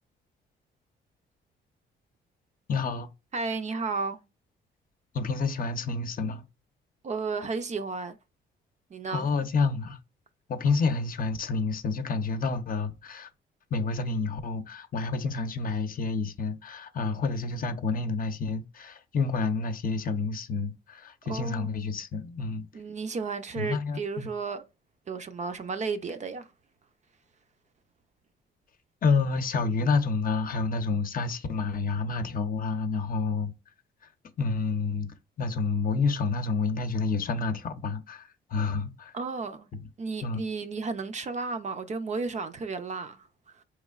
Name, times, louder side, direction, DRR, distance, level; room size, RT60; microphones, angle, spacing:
voice 1, 2.7-3.1 5.1-6.4 9.1-10.0 10.5-13.3 13.7-22.7 23.5-24.3 29.0-33.5 34.4-39.1 39.7-39.8 40.2-40.4, left 4 dB, 45° left, 0.7 m, -29 dB
voice 2, 3.3-4.2 7.0-8.2 8.9-9.3 21.3-21.7 22.7-24.6 25.1-26.5 39.1-39.7 40.0-43.6, right 4 dB, 35° right, 0.5 m, -33 dB
4.2 x 3.1 x 2.4 m
cardioid pair, 90°, 20 cm